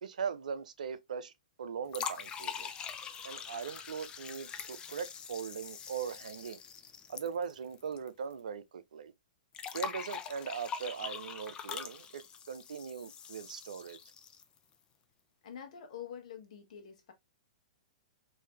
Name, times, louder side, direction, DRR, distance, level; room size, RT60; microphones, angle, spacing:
voice 1, 0.0-1.3 1.6-2.7 3.2-6.6 7.1-9.1 9.7-12.2 12.5-14.0, right 7 dB, 65° right, 0.5 m, -40 dB
sound 1, 1.9-8.1 8.3-8.4 9.5-14.6, left 7 dB, 20° left, 0.4 m, -43 dB
voice 2, 15.4-17.1, left 8 dB, 55° left, 1.1 m, -46 dB
3.2 x 2.7 x 3.0 m
figure-of-eight pair, 110°, 4 cm